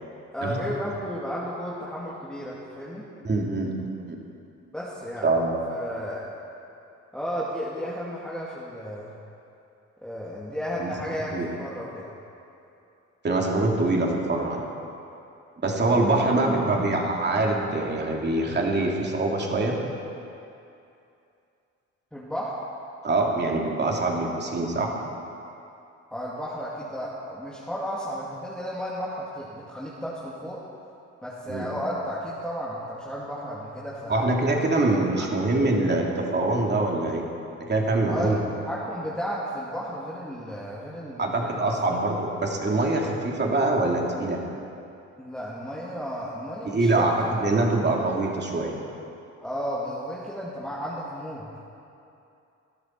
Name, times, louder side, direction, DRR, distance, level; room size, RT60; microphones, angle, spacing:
voice 1, 0.3-3.0 4.7-5.3 5.7-6.3 7.1-9.1 10.0-12.0 16.4-17.0 22.1-22.6 26.1-30.6 31.2-34.3 34.8-34.9 38.1-38.3 38.6-42.0 45.2-47.4 47.8-47.9 49.4-51.5, equal, 5° left, -7 dB, 2.3 m, -33 dB
voice 2, 3.2-3.8 4.1-4.2 5.2-5.6 10.8-10.9 11.3-11.5 13.2-14.6 15.6-19.8 23.0-24.9 31.5-31.7 34.1-37.3 37.7-38.4 41.2-44.4 46.7-48.7, right 2 dB, 35° right, -1 dB, 2.7 m, -24 dB
19.5 x 13.0 x 4.6 m, 2.7 s
cardioid pair, 90°, 30 cm